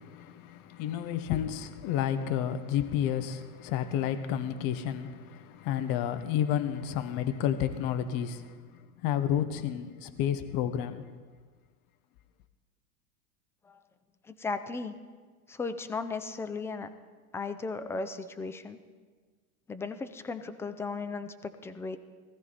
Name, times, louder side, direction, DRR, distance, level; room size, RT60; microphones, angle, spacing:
voice 1, 0.0-11.2, left 10 dB, 45° left, 1.2 m, -31 dB
voice 2, 14.3-15.0 15.5-16.9 17.3-18.8 19.7-22.0, left 4 dB, 5° left, 0.3 m, -36 dB
19.0 x 14.5 x 4.2 m
hypercardioid pair, 105°, 48 cm